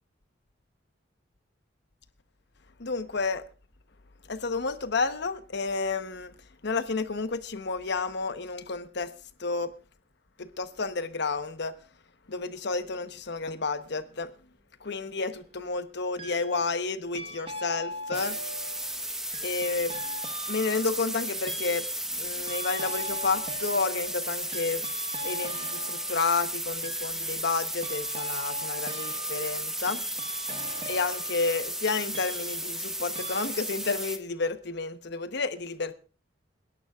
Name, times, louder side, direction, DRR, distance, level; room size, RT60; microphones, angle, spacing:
voice 1, 2.8-3.4 4.3-6.3 6.6-9.1 9.4-9.7 10.4-11.8 12.3-14.3 14.8-18.4 19.4-19.9 20.5-21.9 22.1-24.8 25.2-30.0 30.9-35.9, left 4 dB, 65° left, 1.0 m, -31 dB
sound 1, 14.9-15.4 16.2-16.8 17.1-32.9 33.2-33.5, right 1 dB, 30° right, 1.3 m, -41 dB
sound 2, 18.1-34.2, right 1 dB, 5° right, 1.2 m, -34 dB
28.0 x 11.0 x 2.4 m
head